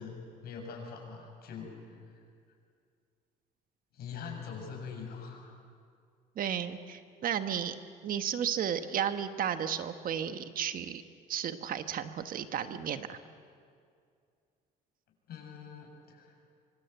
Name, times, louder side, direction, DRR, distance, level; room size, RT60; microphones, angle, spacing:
voice 1, 0.0-2.0 3.9-5.5 15.3-16.3, left 5 dB, 65° left, 1 dB, 7.5 m, -43 dB
voice 2, 6.4-7.7 8.0-11.0 11.3-13.2, right 9 dB, 55° right, 9 dB, 1.4 m, -33 dB
25.0 x 24.5 x 8.3 m, 2.3 s
cardioid pair, 110°, 17 cm